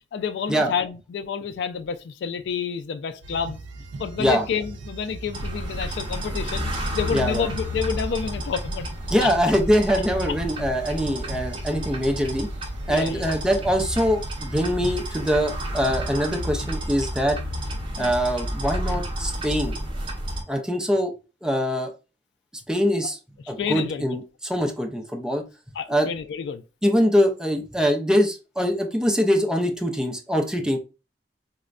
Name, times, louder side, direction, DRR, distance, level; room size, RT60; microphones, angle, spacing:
voice 1, 0.0-3.6 4.0-9.5 12.9-13.3 17.9-18.1 18.9-19.0 23.6-24.2 25.8-26.6, left 6 dB, 70° left, 0.3 m, -29 dB
sound 1, 3.2-17.1, right 2 dB, 90° right, 0.4 m, -40 dB
sound 2, 5.3-20.4, equal, 30° right, 0.8 m, -31 dB
voice 2, 7.1-7.4 9.1-12.5 12.9-17.4 18.0-19.8 20.5-21.1 21.4-21.9 22.7-23.2 23.5-25.4 25.9-26.1 26.8-30.8, equal, 5° right, 0.4 m, -23 dB
4.2 x 2.1 x 2.4 m
head